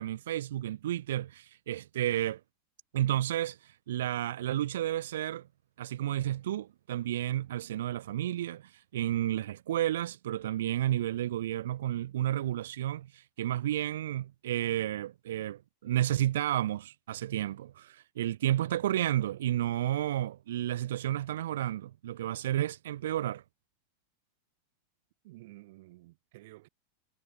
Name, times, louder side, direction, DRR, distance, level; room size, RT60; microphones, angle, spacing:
voice 1, 0.0-2.4 2.9-5.5 5.8-23.4, right 12 dB, 80° right, 0.4 m, -31 dB
voice 2, 25.2-26.7, right 19 dB, 55° right, 5.4 m, -52 dB
supercardioid pair, 170°, 0 cm